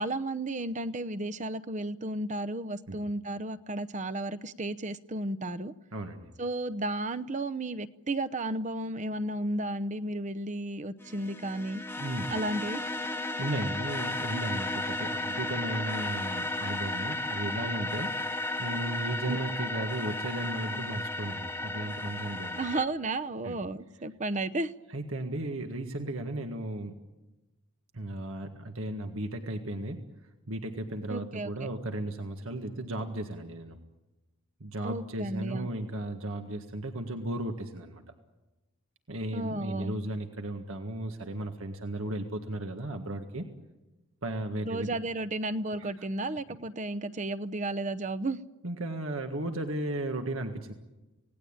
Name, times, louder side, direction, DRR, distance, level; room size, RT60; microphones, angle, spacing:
voice 1, 0.0-5.7 6.4-11.8 12.3-12.8 19.3-19.4 22.6-24.7 31.1-31.5 34.8-35.7 39.3-39.9 44.6-48.4, right 2 dB, 35° right, 14 dB, 0.8 m, -33 dB
voice 2, 5.9-6.3 12.0-12.3 13.1-18.2 18.6-22.6 23.4-23.6 24.9-27.0 27.9-30.0 30.5-33.8 34.6-38.0 39.1-43.5 44.2-45.0 45.8-45.9 48.6-50.7, right 1 dB, 75° right, 5 dB, 1.7 m, -35 dB
sound 1, 11.0-22.9, left 2 dB, 10° left, 0.9 m, -34 dB
27.5 x 18.5 x 8.9 m, 1.1 s
head